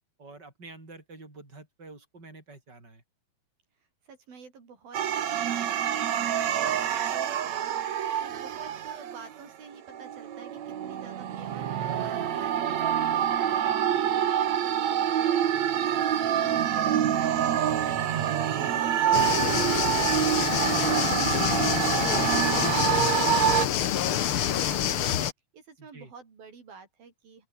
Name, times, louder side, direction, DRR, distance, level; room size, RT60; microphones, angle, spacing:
voice 1, 0.2-3.0 25.8-26.1, right 3 dB, 25° right, 7.9 m, -48 dB
voice 2, 3.8-18.1 18.5-25.1 25.5-27.5, right 5 dB, 70° right, 6.5 m, -49 dB
sound 1, 4.9-9.3 9.9-23.7, right 10 dB, 55° right, 2.6 m, -26 dB
sound 2, 19.1-25.3, left 10 dB, 70° left, 1.3 m, -27 dB
open air
omnidirectional pair, 4.3 m